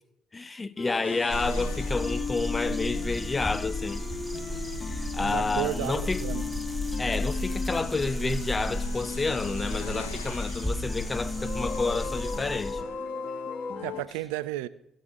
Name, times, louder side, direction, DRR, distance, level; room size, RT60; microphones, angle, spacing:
voice 1, 0.3-4.0 4.8-6.2 7.0-12.9, left 3 dB, 30° left, 0.6 m, -30 dB
sound 1, 0.8-14.0, left 5 dB, 50° left, 0.9 m, -37 dB
sound 2, 1.0-14.0, left 7 dB, 85° left, 0.8 m, -49 dB
sound 3, 1.3-12.8, equal, 5° left, 1.4 m, -33 dB
voice 2, 5.2-6.4 13.8-14.7, right 15 dB, 75° right, 0.4 m, -33 dB
17.0 x 6.5 x 4.0 m
hypercardioid pair, 45°, 0 cm